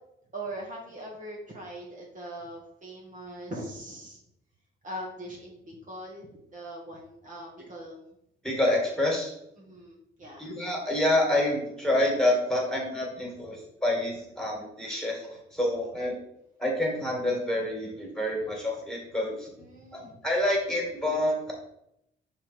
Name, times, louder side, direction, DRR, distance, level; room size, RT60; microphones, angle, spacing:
voice 1, 0.3-4.2 4.8-8.1 9.6-10.4 13.4-13.5 19.6-20.2, right 1 dB, 40° right, -3 dB, 1.7 m, -41 dB
voice 2, 8.4-9.3 10.4-16.1 16.6-19.5 19.9-21.5, left 1 dB, 5° left, -1 dB, 2.3 m, -27 dB
5.9 x 3.8 x 4.6 m, 0.79 s
cardioid pair, 90°, 20 cm